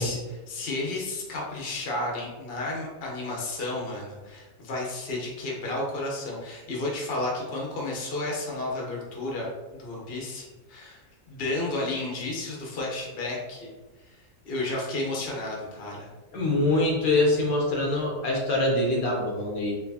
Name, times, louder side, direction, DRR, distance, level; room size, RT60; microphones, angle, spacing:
voice 1, 0.0-9.5 9.7-11.0 11.3-13.7 14.1-14.2 14.4-16.1, left 2 dB, 45° left, -2 dB, 1.1 m, -32 dB
voice 2, 16.3-19.7, left 2 dB, 70° left, -2 dB, 1.3 m, -24 dB
4.4 x 3.2 x 2.7 m, 1.2 s
omnidirectional pair, 1.6 m